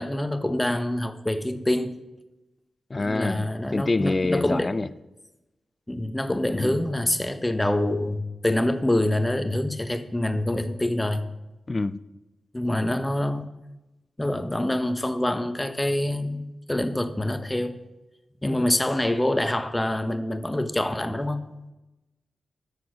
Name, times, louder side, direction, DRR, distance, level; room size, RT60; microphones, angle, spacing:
voice 1, 0.0-1.9 2.9-4.8 5.9-11.2 12.5-13.5 14.2-16.4 16.7-17.8 18.4-21.4, left 1 dB, 15° left, 0.9 m, -26 dB
voice 2, 2.9-4.9 6.5-6.8 11.7-12.0 18.4-18.7, left 3 dB, 35° left, 0.4 m, -26 dB
9.5 x 6.3 x 6.1 m
cardioid pair, 75°, 0 cm